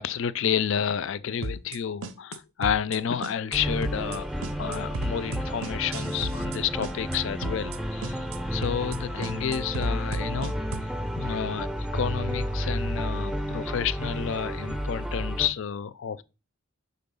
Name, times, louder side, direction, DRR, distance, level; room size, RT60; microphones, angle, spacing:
voice 1, 0.0-4.3 4.6-8.3 8.5-10.6 11.2-16.2, left 8 dB, 55° left, 0.3 m, -30 dB
sound 1, 1.4-2.4 2.6-3.0 3.2-3.6 3.8-4.2 4.4-6.6 6.8-7.2 7.4-7.8 8.0-8.4 8.6-9.0 9.2-10.9, right 2 dB, 65° right, 0.6 m, -33 dB
sound 2, 3.5-15.5, equal, 5° right, 0.5 m, -31 dB
5.2 x 4.2 x 5.4 m
head